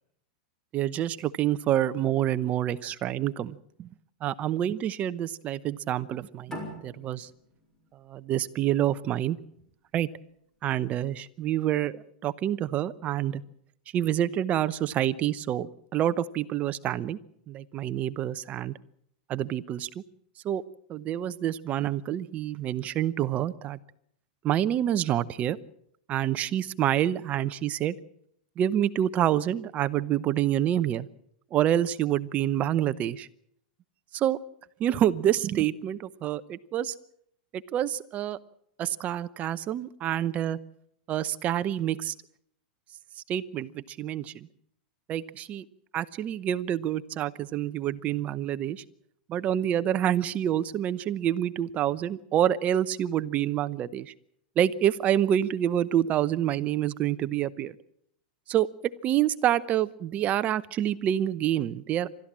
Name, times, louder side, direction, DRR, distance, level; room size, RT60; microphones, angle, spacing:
voice 1, 0.7-3.9 4.2-7.3 7.9-9.4 9.9-10.1 10.6-13.4 13.9-17.2 17.5-18.7 19.3-20.0 20.4-20.6 20.9-23.8 24.4-25.6 26.1-28.0 28.6-31.1 31.5-33.3 34.1-34.4 34.8-36.9 37.5-38.4 38.8-40.6 41.1-42.1 43.3-44.5 45.1-45.6 45.9-48.8 49.3-54.1 54.6-57.7 58.5-62.1, right 11 dB, 30° right, 15 dB, 0.8 m, -27 dB
sound 1, 6.5-9.7, equal, 10° left, 6.5 m, -43 dB
29.5 x 13.5 x 7.5 m, 0.71 s
supercardioid pair, 135°, 5 cm